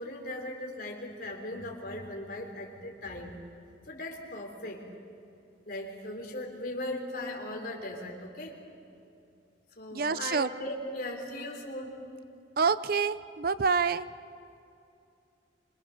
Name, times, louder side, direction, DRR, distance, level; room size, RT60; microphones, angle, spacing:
voice 1, 0.0-3.4 3.8-4.9 5.7-8.6 9.8-12.0, left 1 dB, 50° left, 1 dB, 3.7 m, -38 dB
voice 2, 9.9-10.5 12.6-14.1, right 5 dB, 50° right, 15 dB, 0.5 m, -27 dB
26.0 x 23.0 x 6.6 m, 2.6 s
head